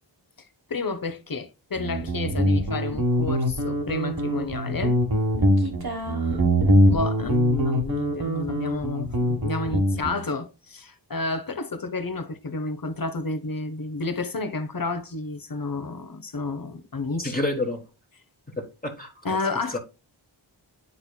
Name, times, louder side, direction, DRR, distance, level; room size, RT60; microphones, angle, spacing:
voice 1, 0.7-5.0 6.8-17.3 19.2-19.8, left 3 dB, 45° left, 1.0 m, -31 dB
Guitar, 1.8-10.2, equal, 50° right, 1.5 m, -23 dB
voice 2, 17.2-17.8 18.6-19.1 19.7-19.8, left 2 dB, 20° left, 1.4 m, -28 dB
9.9 x 4.3 x 2.3 m
wide cardioid pair, 60°, 46 cm